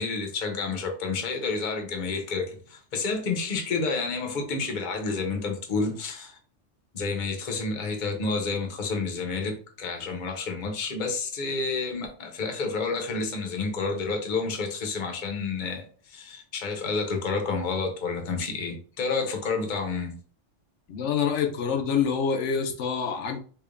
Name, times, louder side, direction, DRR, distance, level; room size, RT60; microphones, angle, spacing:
voice 1, 0.0-6.4 6.9-20.2, left 4 dB, 45° left, 0.8 m, -30 dB
voice 2, 20.9-23.4, left 6 dB, 80° left, 1.0 m, -26 dB
4.8 x 2.5 x 2.5 m
omnidirectional pair, 1.2 m